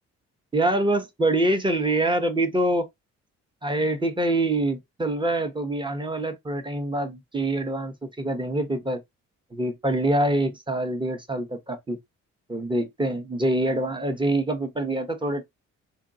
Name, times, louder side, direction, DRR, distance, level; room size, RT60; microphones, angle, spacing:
voice 1, 0.5-2.9 3.6-9.0 9.5-12.0 12.5-15.4, right 1 dB, 15° right, 1.0 m, -25 dB
3.6 x 2.8 x 2.6 m
hypercardioid pair, 45°, 35 cm